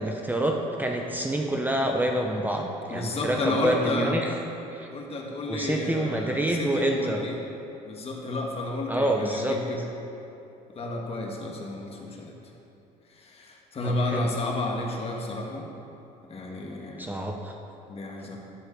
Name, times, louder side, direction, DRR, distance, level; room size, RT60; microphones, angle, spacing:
voice 1, 0.0-4.3 4.7-4.9 5.5-7.2 8.9-9.6 13.8-14.3 17.0-17.5, right 1 dB, 10° right, 1 dB, 0.8 m, -27 dB
voice 2, 2.9-4.2 4.9-7.4 7.8-9.8 10.7-12.3 13.1-15.7 16.3-17.1 17.9-18.4, left 2 dB, 40° left, 0 dB, 1.6 m, -31 dB
11.5 x 4.5 x 7.0 m, 2.9 s
supercardioid pair, 90°, 16 cm